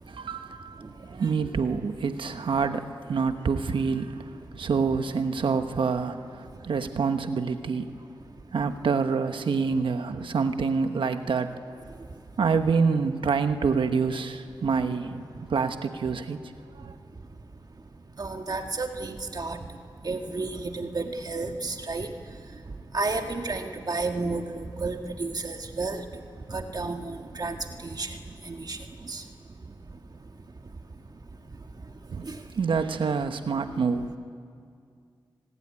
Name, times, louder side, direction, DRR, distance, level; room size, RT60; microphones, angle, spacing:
voice 1, 0.1-7.9 8.5-11.5 12.4-16.4 16.7-16.9 32.1-32.2 32.5-34.2, right 5 dB, 80° right, 8 dB, 1.1 m, -27 dB
voice 2, 18.2-19.6 20.0-22.1 22.5-22.6 22.9-26.1 26.5-28.2 28.4-29.2 32.2-32.4, right 3 dB, 50° right, 4 dB, 1.8 m, -32 dB
29.0 x 20.0 x 9.7 m, 2.3 s
cardioid pair, 45°, 9 cm